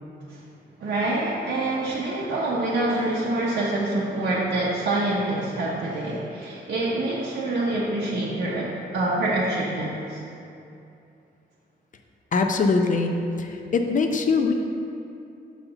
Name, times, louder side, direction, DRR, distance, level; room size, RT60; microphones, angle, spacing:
voice 1, 0.8-10.2, right 2 dB, 80° right, -7 dB, 0.9 m, -26 dB
voice 2, 12.3-13.1 13.4-14.5, left 4 dB, 45° left, 5 dB, 0.6 m, -22 dB
5.5 x 4.2 x 5.8 m, 2.6 s
cardioid pair, 115°, 19 cm